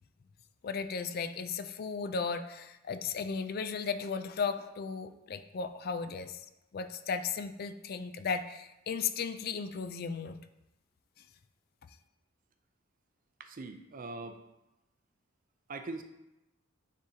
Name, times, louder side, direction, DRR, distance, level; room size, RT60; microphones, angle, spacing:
voice 1, 0.6-6.4 6.7-10.4, left 5 dB, 50° left, 10 dB, 0.3 m, -35 dB
voice 2, 13.4-14.4 15.7-16.0, right 3 dB, 45° right, 7 dB, 0.5 m, -41 dB
9.6 x 3.7 x 2.8 m, 0.94 s
head